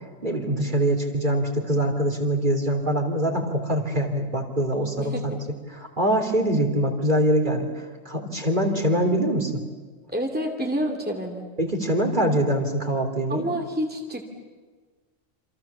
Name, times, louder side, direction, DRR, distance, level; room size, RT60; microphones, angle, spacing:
voice 1, 0.2-5.3 5.7-7.7 8.1-9.5 11.6-13.4, right 1 dB, 35° right, 3 dB, 3.5 m, -23 dB
voice 2, 5.0-5.4 10.1-11.5 13.3-14.2, equal, 5° right, 2 dB, 2.4 m, -28 dB
28.0 x 27.0 x 7.3 m, 1.4 s
omnidirectional pair, 1.4 m